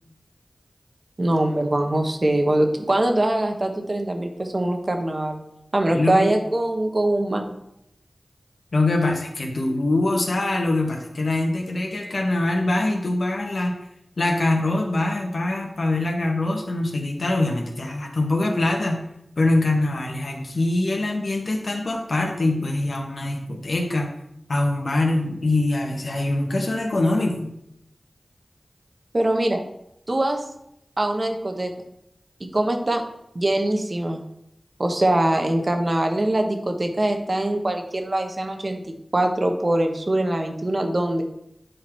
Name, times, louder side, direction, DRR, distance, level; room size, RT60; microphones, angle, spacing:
voice 1, 1.2-5.4 5.7-7.6 29.1-29.6 30.1-30.4 31.0-31.7 32.4-33.0 33.3-34.2 34.8-41.2, right 1 dB, 45° right, 4 dB, 1.2 m, -23 dB
voice 2, 5.9-6.3 8.7-13.8 14.2-19.0 19.4-24.1 24.5-27.5, left 2 dB, 75° left, 1 dB, 1.4 m, -23 dB
9.6 x 3.9 x 4.6 m, 0.79 s
wide cardioid pair, 50°, 0 cm